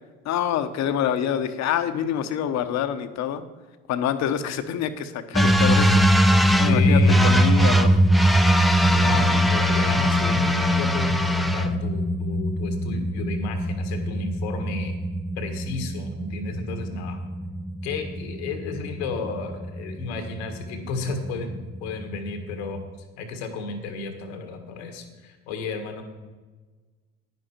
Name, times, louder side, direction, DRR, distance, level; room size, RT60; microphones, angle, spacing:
voice 1, 0.2-3.4 3.9-8.0, left 9 dB, 60° left, 11 dB, 1.0 m, -26 dB
sound 1, 5.3-22.8, equal, ahead, 0.6 m, -22 dB
voice 2, 6.7-7.2 8.8-14.9 15.4-17.2 17.8-22.8 23.2-26.0, left 4 dB, 85° left, 6 dB, 1.6 m, -33 dB
10.5 x 9.8 x 4.4 m, 1.3 s
supercardioid pair, 75°, 31 cm